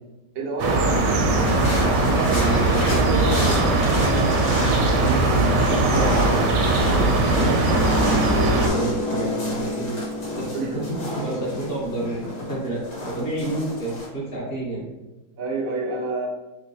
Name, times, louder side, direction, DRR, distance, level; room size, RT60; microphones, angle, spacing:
voice 1, 0.3-1.0 10.5-10.7 15.4-16.3, right 3 dB, 50° right, -2 dB, 0.7 m, -27 dB
sound 1, 0.6-8.7, right 2 dB, 85° right, 1.2 m, -20 dB
sound 2, 1.4-14.0, left 2 dB, 80° left, 1.6 m, -31 dB
voice 2, 2.0-6.4 6.8-10.0 10.4-14.8, right 2 dB, 40° left, -6 dB, 1.1 m, -29 dB
sound 3, 7.3-13.0, left 1 dB, 55° left, 0.9 m, -31 dB
3.6 x 3.0 x 2.8 m, 1.1 s
omnidirectional pair, 1.8 m